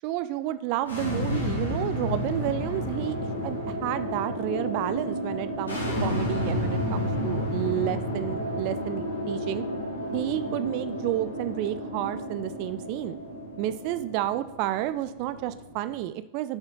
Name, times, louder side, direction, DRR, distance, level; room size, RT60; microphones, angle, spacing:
voice 1, 0.0-3.2 3.4-9.6 10.1-13.2 13.6-16.6, right 13 dB, 45° right, 13 dB, 0.4 m, -30 dB
sound 1, 0.8-16.0, left 1 dB, 75° left, 2.8 m, -31 dB
7.1 x 6.4 x 4.7 m, 0.86 s
figure-of-eight pair, 90°, 0 cm